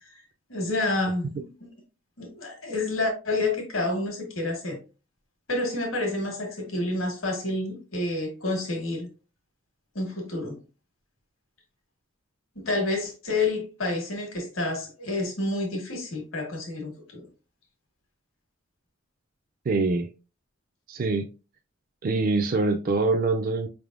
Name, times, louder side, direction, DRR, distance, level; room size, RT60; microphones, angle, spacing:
voice 1, 0.5-1.7 2.2-4.8 5.5-9.1 9.9-10.5 12.5-17.2, left 2 dB, 80° left, 1.4 m, -29 dB
voice 2, 19.7-20.1 20.9-21.3 22.0-23.7, right 3 dB, 45° right, 0.3 m, -24 dB
5.0 x 3.4 x 2.4 m
head